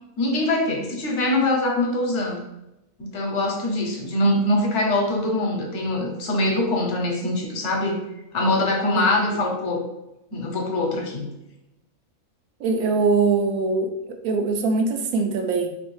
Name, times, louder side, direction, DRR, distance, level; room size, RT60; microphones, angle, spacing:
voice 1, 0.2-2.4 3.0-8.0 8.3-9.8 10.3-11.3, left 1 dB, 60° left, 1 dB, 1.0 m, -23 dB
voice 2, 12.6-15.7, right 4 dB, 80° right, 4 dB, 1.0 m, -22 dB
3.1 x 3.1 x 3.1 m, 0.91 s
omnidirectional pair, 1.5 m